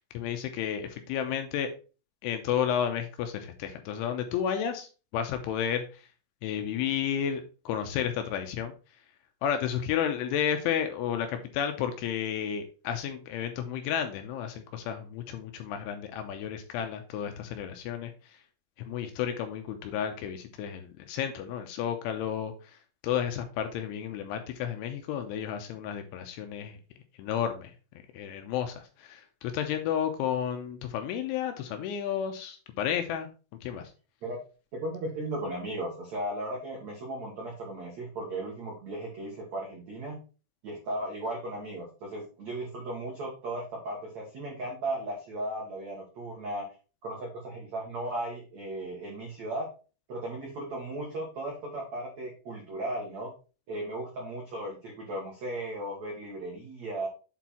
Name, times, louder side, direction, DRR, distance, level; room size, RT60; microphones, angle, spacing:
voice 1, 0.1-1.7 2.2-4.9 5.1-5.9 6.4-8.7 9.4-18.1 18.9-22.8 23.0-26.8 27.2-27.7 28.1-33.3 33.6-33.9, left 9 dB, 80° left, 6 dB, 3.0 m, -32 dB
voice 2, 34.7-40.2 40.6-46.7 47.0-49.7 50.1-53.3 53.7-57.1, right 1 dB, 70° right, -2 dB, 1.7 m, -36 dB
8.2 x 4.4 x 4.3 m, 0.34 s
omnidirectional pair, 6.0 m